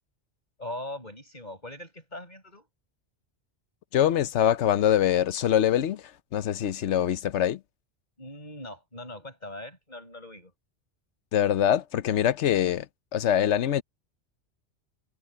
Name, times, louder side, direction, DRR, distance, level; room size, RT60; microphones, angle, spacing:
voice 1, 0.6-2.7 8.2-10.5, left 1 dB, 40° left, 8.1 m, -41 dB
voice 2, 3.9-6.0 6.3-7.6 11.3-12.9 13.1-13.8, left 10 dB, 85° left, 1.1 m, -23 dB
omnidirectional pair, 1.2 m